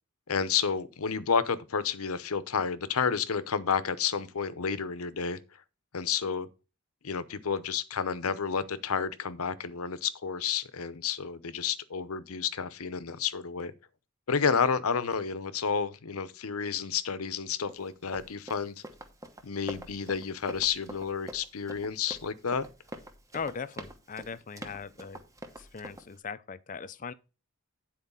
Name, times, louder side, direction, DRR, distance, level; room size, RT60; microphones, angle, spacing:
voice 1, 0.3-5.4 5.9-6.5 7.0-13.7 14.3-18.8 19.4-22.7, left 6 dB, 80° left, 0.7 m, -30 dB
Run, 17.7-26.1, right 1 dB, 15° right, 1.0 m, -45 dB
voice 2, 23.3-25.2 25.6-27.1, left 5 dB, 35° left, 0.5 m, -39 dB
9.6 x 4.5 x 5.4 m
head